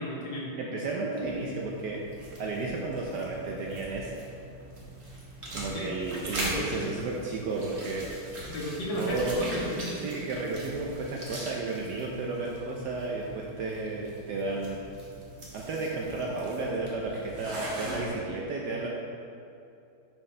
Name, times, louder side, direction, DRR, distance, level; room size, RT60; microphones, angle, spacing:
voice 1, 0.0-0.6 5.7-5.9 6.4-6.9 8.5-10.0, left 1 dB, 65° left, -4 dB, 2.0 m, -34 dB
voice 2, 0.6-2.0 2.4-4.1 5.5-8.1 9.0-9.4 10.0-14.8 15.5-18.9, right 3 dB, 70° right, -2 dB, 1.1 m, -33 dB
sound 1, 1.2-18.1, right 1 dB, 35° right, 1.3 m, -41 dB
10.5 x 4.5 x 3.3 m, 2.6 s
omnidirectional pair, 2.3 m